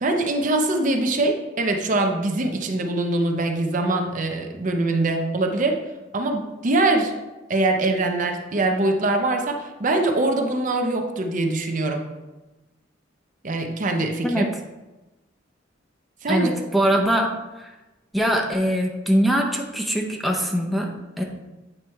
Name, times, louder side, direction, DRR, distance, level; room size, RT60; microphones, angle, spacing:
voice 1, 0.0-5.8 6.1-7.1 7.5-12.1 13.4-14.5 16.2-16.5, right 2 dB, 40° right, 4 dB, 0.6 m, -23 dB
voice 2, 16.3-17.7 18.1-21.2, equal, ahead, 0 dB, 0.6 m, -22 dB
8.6 x 3.2 x 4.5 m, 1.1 s
head